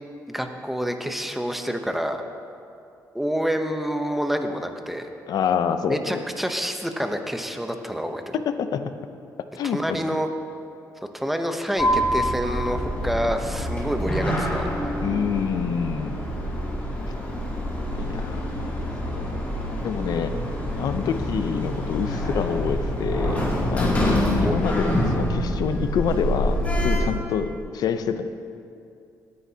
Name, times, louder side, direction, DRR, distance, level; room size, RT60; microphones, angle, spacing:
voice 1, 0.3-2.2 3.1-5.1 5.9-8.3 9.6-10.3 11.1-14.7 24.4-24.5, equal, 5° right, 5 dB, 0.8 m, -27 dB
voice 2, 5.3-6.2 8.3-8.9 9.5-10.0 15.0-16.2 17.9-18.7 19.1-20.3 20.8-28.3, left 7 dB, 70° left, 10 dB, 0.7 m, -27 dB
Sliding door, 11.8-27.0, equal, 20° left, 2.7 m, -26 dB
19.0 x 9.7 x 2.9 m, 2.5 s
cardioid pair, 110°, 7 cm